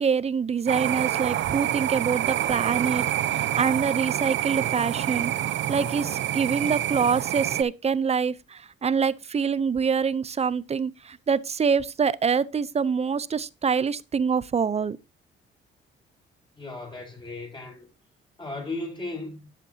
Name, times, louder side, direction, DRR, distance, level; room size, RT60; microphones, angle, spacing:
voice 1, 0.0-15.0, right 6 dB, 30° right, 0.6 m, -25 dB
sound 1, 0.7-7.6, right 12 dB, 70° right, 0.7 m, -27 dB
voice 2, 16.5-17.9 18.4-19.4, left 2 dB, 25° left, 6.5 m, -35 dB
12.0 x 8.2 x 2.8 m
cardioid pair, 90°, 20 cm